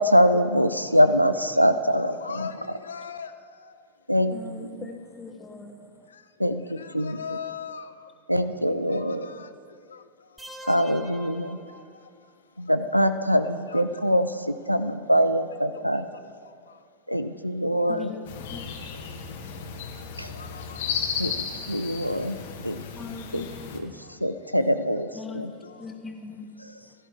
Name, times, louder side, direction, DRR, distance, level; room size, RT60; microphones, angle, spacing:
voice 1, 0.0-2.5 4.1-4.4 6.4-7.2 8.3-9.3 10.6-11.6 12.6-16.1 17.1-18.1 20.2-20.3 21.2-22.4 22.6-22.9 23.3-23.5 23.7-23.9 24.2-25.5, equal, 90° right, 11 dB, 0.6 m, -23 dB
voice 2, 2.0-2.5 2.8-3.3 6.7-7.9 8.9-9.5 13.7-13.8 15.6-16.0 20.3-20.9, left 7 dB, 70° left, 10 dB, 0.6 m, -38 dB
voice 3, 4.3-6.1 17.9-19.1 22.9-24.2 25.1-26.9, left 4 dB, 15° left, 4 dB, 1.5 m, -41 dB
sound 1, 10.4-12.3, right 1 dB, 5° right, 1.0 m, -44 dB
sound 2, 18.3-23.8, left 6 dB, 55° left, 1.4 m, -34 dB
16.0 x 13.0 x 4.6 m, 2.3 s
figure-of-eight pair, 90°, 0 cm